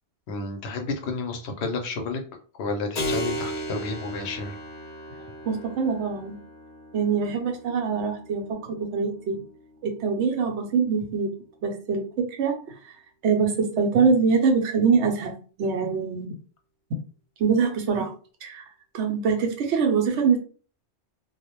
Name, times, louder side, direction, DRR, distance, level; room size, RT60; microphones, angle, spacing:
voice 1, 0.3-2.2 2.5-4.6, left 3 dB, 75° left, 4 dB, 0.8 m, -31 dB
Keyboard (musical), 2.9-11.2, equal, 45° left, 0.7 m, -37 dB
voice 2, 5.5-6.4 6.9-9.4 9.8-11.3 11.6-12.9 13.2-16.3 17.4-18.1 18.4-18.6 18.9-20.4, right 5 dB, 80° right, 4 dB, 0.9 m, -24 dB
2.3 x 2.0 x 2.9 m, 0.40 s
omnidirectional pair, 1.2 m